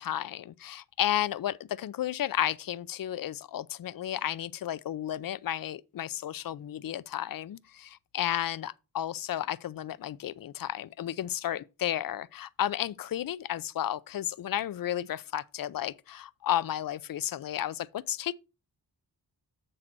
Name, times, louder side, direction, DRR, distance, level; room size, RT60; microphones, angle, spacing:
voice 1, 0.0-18.3, left 11 dB, 60° left, 0.5 m, -33 dB
7.7 x 3.9 x 5.9 m
wide cardioid pair, 95°, 38 cm